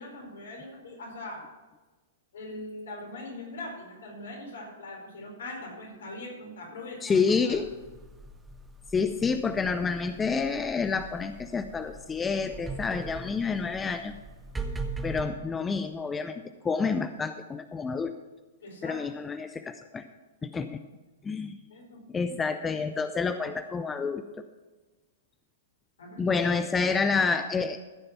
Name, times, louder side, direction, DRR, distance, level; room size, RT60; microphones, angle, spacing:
voice 1, 0.0-1.5 2.3-7.5 18.6-19.0 21.7-22.0 26.0-26.4, left 2 dB, 75° left, 0 dB, 4.5 m, -41 dB
voice 2, 7.0-7.7 8.9-14.1 15.0-18.1 18.8-20.0 20.4-20.8 21.2-21.6 22.1-24.2 26.2-27.8, left 5 dB, 15° left, 9 dB, 0.6 m, -28 dB
sound 1, 7.5-15.2, right 3 dB, 10° right, 1.0 m, -41 dB
14.5 x 6.6 x 5.8 m, 1.2 s
hypercardioid pair, 115°, 0 cm